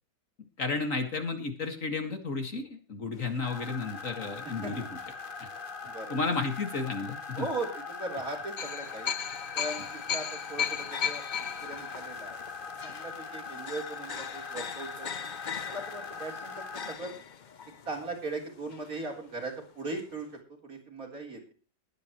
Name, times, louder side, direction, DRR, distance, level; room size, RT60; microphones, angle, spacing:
voice 1, 0.6-5.0 5.4-5.5 6.1-7.5, left 4 dB, 50° left, 6 dB, 2.2 m, -32 dB
sound 1, 3.1-5.6 6.2-6.3 8.6-19.3 19.6-19.7 20.0-20.1, left 8 dB, 70° left, 0.4 m, -38 dB
sound 2, 3.4-17.0, left 4 dB, 30° left, 1.7 m, -41 dB
voice 2, 5.9-6.2 7.4-9.1 9.5-9.9 10.1-11.2 11.6-12.4 12.8-15.1 15.6-17.1 17.9-20.3 20.6-21.5, right 2 dB, 55° right, 1 dB, 4.1 m, -38 dB
21.0 x 9.4 x 3.1 m, 0.36 s
omnidirectional pair, 1.8 m